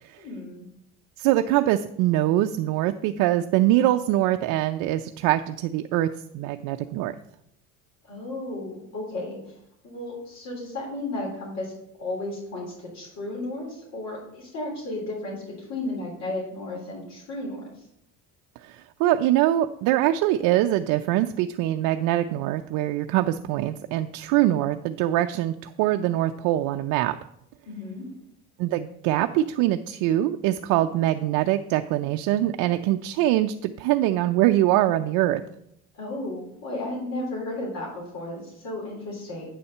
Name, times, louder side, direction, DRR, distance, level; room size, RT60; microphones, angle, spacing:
voice 1, 0.2-0.7 8.0-9.5 9.8-11.7 12.0-17.6 27.7-28.0 35.9-39.5, left 2 dB, 55° left, -3 dB, 3.6 m, -34 dB
voice 2, 1.2-7.1 18.6-27.2 28.6-35.4, right 14 dB, 75° right, 7 dB, 0.5 m, -23 dB
9.0 x 4.2 x 6.5 m, 0.76 s
cardioid pair, 115°, 31 cm